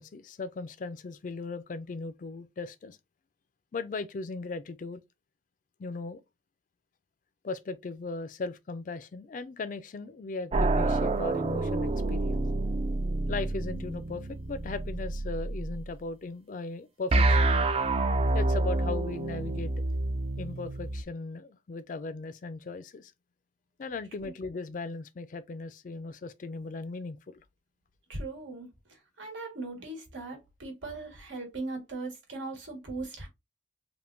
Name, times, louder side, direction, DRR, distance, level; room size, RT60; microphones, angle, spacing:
voice 1, 0.0-3.0 3.7-5.0 5.8-6.2 7.4-12.4 13.3-17.5 18.3-19.7 20.4-23.1 23.8-27.4, left 3 dB, 45° left, 0.3 m, -38 dB
sound 1, 10.5-15.8 17.1-21.0, right 2 dB, 30° right, 0.3 m, -28 dB
voice 2, 28.1-33.3, right 2 dB, 90° right, 1.4 m, -39 dB
3.5 x 2.5 x 2.5 m
head